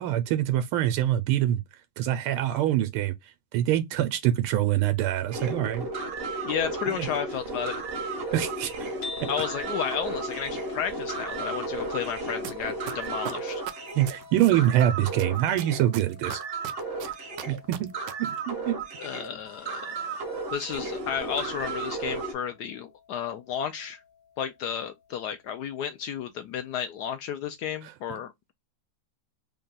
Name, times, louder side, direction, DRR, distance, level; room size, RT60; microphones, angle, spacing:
voice 1, 0.0-1.6 2.0-3.1 3.5-5.9 6.9-7.1 8.3-8.9 13.9-16.4 17.5-17.9 18.2-18.8 28.1-28.2, right 12 dB, 85° right, 1.5 m, -25 dB
sound 1, 5.3-22.3, right 3 dB, 55° right, 0.6 m, -34 dB
voice 2, 6.4-7.7 9.3-13.6 19.0-20.2 20.5-24.0 24.4-28.5, left 8 dB, 80° left, 0.9 m, -32 dB
sound 2, 9.0-25.2, left 6 dB, 65° left, 1.6 m, -47 dB
sound 3, 12.4-12.5 12.9-14.8 15.2-18.1 18.4-18.5, right 10 dB, 70° right, 1.1 m, -37 dB
3.7 x 2.2 x 3.9 m
omnidirectional pair, 2.3 m